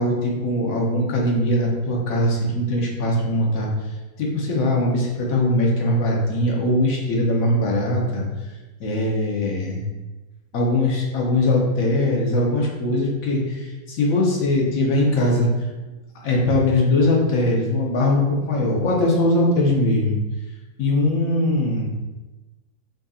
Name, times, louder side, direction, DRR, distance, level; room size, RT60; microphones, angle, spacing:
voice 1, 0.0-3.7 4.2-8.2 8.8-9.8 10.5-15.5 16.2-20.2 20.8-21.9, left 1 dB, 65° left, -2 dB, 1.2 m, -21 dB
5.4 x 2.6 x 2.4 m, 1.1 s
omnidirectional pair, 1.6 m